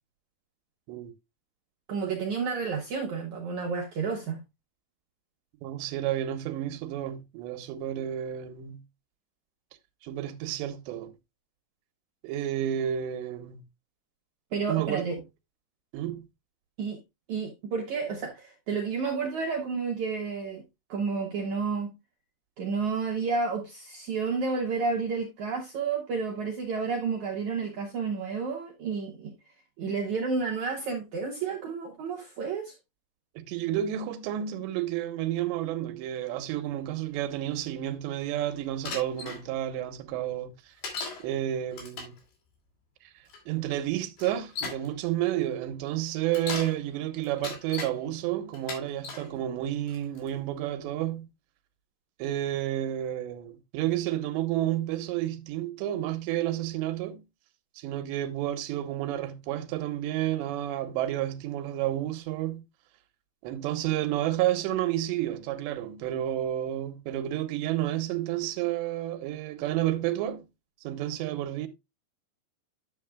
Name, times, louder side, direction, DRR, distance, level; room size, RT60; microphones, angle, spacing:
voice 1, 1.9-4.4 14.5-15.1 16.8-17.0 17.3-20.6 20.9-21.9 22.6-29.3 29.8-32.7, right 5 dB, 65° right, 1.9 m, -31 dB
voice 2, 5.6-8.8 10.0-11.1 12.2-13.6 14.7-15.0 15.9-16.3 33.4-40.7 41.2-42.1 43.0-43.1 43.5-51.3 52.2-57.2 57.8-62.6 63.4-70.5 70.8-71.7, right 12 dB, 85° right, 3.1 m, -31 dB
Bicycle, 38.9-39.4 40.8-41.2 41.7-42.2 43.3-43.4 44.2-44.9 46.2-46.8 47.2-47.9 48.5-49.3 49.9-50.3, left 4 dB, 65° left, 4.4 m, -37 dB
11.0 x 7.3 x 2.3 m
omnidirectional pair, 5.0 m